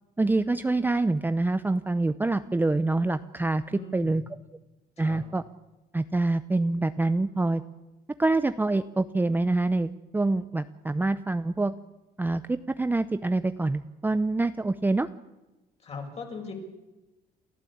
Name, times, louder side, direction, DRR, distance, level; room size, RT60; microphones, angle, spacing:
voice 1, 0.2-3.6 3.9-4.2 5.0-5.4 5.9-7.6 8.2-11.7 12.2-15.1, right 2 dB, 10° right, 11 dB, 0.7 m, -26 dB
voice 2, 3.7-4.3 5.0-5.2 15.8-16.5, left 4 dB, 40° left, 2 dB, 6.3 m, -40 dB
29.0 x 14.0 x 8.6 m, 1.1 s
cardioid pair, 110°, 17 cm